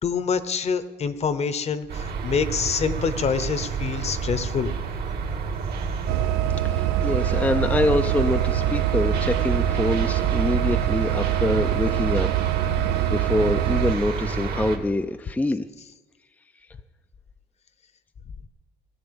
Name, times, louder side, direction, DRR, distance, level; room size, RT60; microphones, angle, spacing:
voice 1, 0.0-4.7, left 6 dB, 40° left, 13 dB, 0.9 m, -26 dB
sound 1, 1.9-14.8, right 5 dB, 65° right, 2.1 m, -29 dB
sound 2, 6.1-14.0, right 17 dB, 90° right, 0.4 m, -25 dB
voice 2, 6.6-12.3 13.1-15.6, left 2 dB, 10° left, 7 dB, 0.4 m, -25 dB
17.0 x 7.9 x 7.0 m, 1.2 s
cardioid pair, 110°, 17 cm